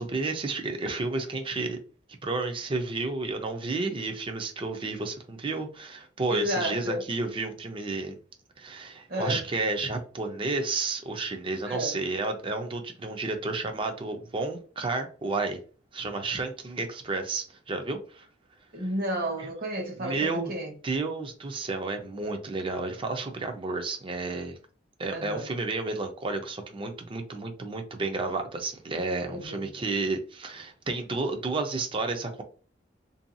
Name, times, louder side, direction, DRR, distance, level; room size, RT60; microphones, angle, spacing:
voice 1, 0.0-1.8 2.2-8.2 8.6-15.6 15.9-18.3 19.4-19.5 20.0-20.5 20.8-24.6 25.0-32.4, right 3 dB, 30° right, 0.5 m, -31 dB
voice 2, 6.3-7.0 9.1-9.4 11.6-12.0 18.7-20.7 25.1-25.5 29.3-29.6, equal, 55° right, 1.0 m, -32 dB
2.6 x 2.3 x 2.6 m
head